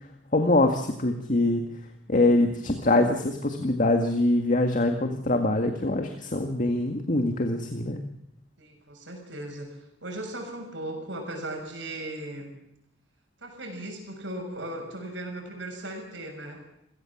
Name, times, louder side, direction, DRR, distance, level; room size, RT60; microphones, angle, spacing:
voice 1, 0.3-1.6 2.1-8.0, left 2 dB, 45° left, 5 dB, 1.9 m, -24 dB
voice 2, 8.6-12.5 13.4-16.6, right 1 dB, 75° right, 3 dB, 6.8 m, -37 dB
27.5 x 16.5 x 7.3 m, 0.78 s
head